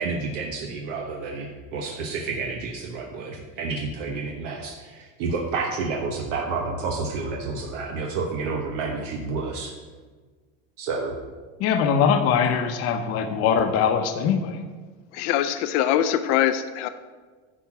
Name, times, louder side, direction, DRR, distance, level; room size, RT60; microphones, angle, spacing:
voice 1, 0.0-9.7 10.8-11.1, right 4 dB, 80° right, 1 dB, 1.2 m, -30 dB
voice 2, 11.6-14.6, left 7 dB, 40° left, 5 dB, 0.8 m, -22 dB
voice 3, 15.1-16.9, left 11 dB, 70° left, 10 dB, 0.6 m, -23 dB
10.0 x 4.5 x 5.9 m, 1.4 s
cardioid pair, 155°, 37 cm